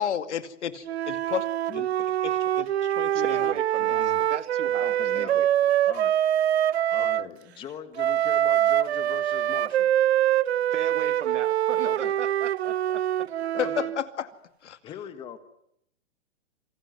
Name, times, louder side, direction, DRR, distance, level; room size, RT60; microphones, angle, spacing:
voice 1, 0.0-1.5 1.7-1.8 2.2-4.2 6.9-7.3 13.6-14.3 14.6-14.8, left 9 dB, 70° left, 11 dB, 2.4 m, -33 dB
Wind instrument woodwind instrument, 0.9-7.3 8.0-14.0, right 11 dB, 60° right, 1.0 m, -24 dB
voice 2, 3.1-5.5 10.7-13.0, right 8 dB, 80° right, 10 dB, 2.7 m, -37 dB
voice 3, 4.6-5.4 5.8-6.2 6.9-9.9 11.8-12.2 13.5-13.9 14.8-15.4, left 9 dB, 15° left, 12 dB, 1.6 m, -40 dB
27.5 x 21.0 x 9.4 m, 0.74 s
hypercardioid pair, 170°, 36 cm